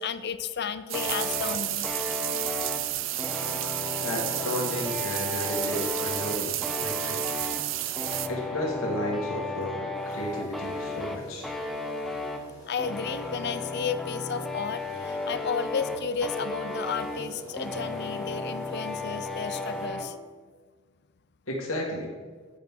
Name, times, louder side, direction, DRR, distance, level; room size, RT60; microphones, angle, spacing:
voice 1, 0.0-1.9 12.7-20.1, left 6 dB, 55° left, 13 dB, 0.5 m, -33 dB
sound 1, 0.9-20.1, left 2 dB, ahead, 0.8 m, -35 dB
sound 2, 0.9-8.3, right 14 dB, 65° right, 0.5 m, -31 dB
sound 3, 1.1-3.9 4.3-4.4 4.6-19.9, left 2 dB, 20° left, 2.7 m, -49 dB
voice 2, 4.0-7.2 8.3-11.5 21.5-22.1, left 1 dB, 80° left, -1 dB, 1.8 m, -33 dB
10.5 x 8.3 x 3.7 m, 1.5 s
head